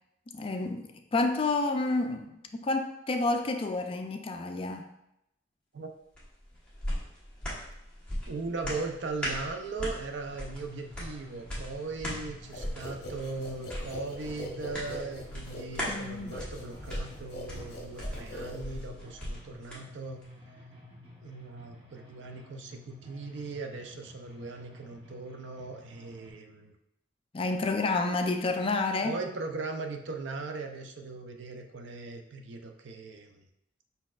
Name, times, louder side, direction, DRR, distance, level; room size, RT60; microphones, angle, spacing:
voice 1, 0.3-4.9 15.9-16.4 27.3-29.2, left 3 dB, 30° left, 5 dB, 0.4 m, -29 dB
sound 1, 6.1-19.8 20.2-20.3, equal, 5° left, 1.1 m, -39 dB
voice 2, 8.3-20.2 21.2-26.7 29.0-33.4, right 3 dB, 70° right, 5 dB, 0.5 m, -39 dB
sound 2, 10.3-26.3, left 1 dB, 30° right, 1.0 m, -52 dB
sound 3, 12.5-19.0, left 1 dB, 55° left, 0.8 m, -43 dB
5.4 x 4.1 x 2.4 m, 0.81 s
head